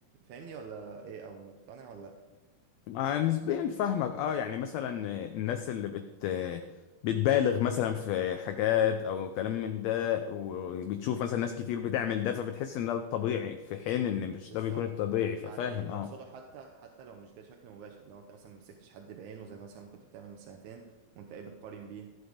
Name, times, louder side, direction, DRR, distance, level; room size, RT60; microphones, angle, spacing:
voice 1, 0.2-2.2 14.5-14.9 15.4-22.1, right 6 dB, 80° right, 3 dB, 2.3 m, -47 dB
voice 2, 2.9-6.6 7.0-16.1, left 10 dB, 75° left, 7 dB, 1.8 m, -30 dB
14.5 x 7.9 x 5.1 m, 1.2 s
omnidirectional pair, 3.4 m